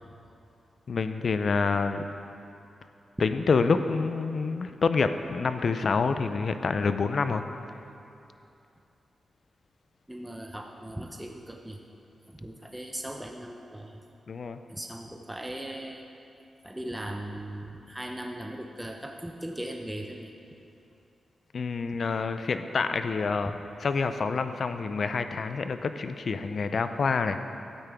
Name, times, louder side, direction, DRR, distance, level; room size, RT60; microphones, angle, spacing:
voice 1, 0.9-2.0 3.2-7.4 14.3-14.6 21.5-27.5, left 4 dB, 65° left, 9 dB, 0.5 m, -27 dB
voice 2, 10.1-11.8 12.3-14.0 14.7-16.0 16.6-20.3 23.5-23.6, right 1 dB, 10° right, 1 dB, 0.8 m, -38 dB
12.5 x 9.0 x 3.5 m, 2.7 s
cardioid pair, 55°, 0 cm